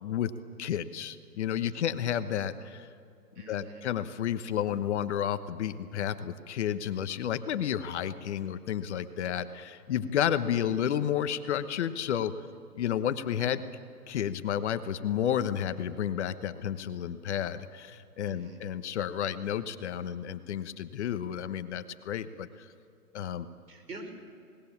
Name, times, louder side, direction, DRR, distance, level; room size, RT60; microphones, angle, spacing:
voice 1, 0.0-0.3 0.6-2.9 3.5-12.3 12.8-13.6 14.1-22.5 23.1-23.5, left 9 dB, 45° left, 11 dB, 1.2 m, -31 dB
voice 2, 3.4-3.8 18.2-18.6 23.7-24.1, right 2 dB, 85° right, 5 dB, 5.5 m, -46 dB
27.5 x 19.5 x 7.3 m, 2.5 s
hypercardioid pair, 145°, 47 cm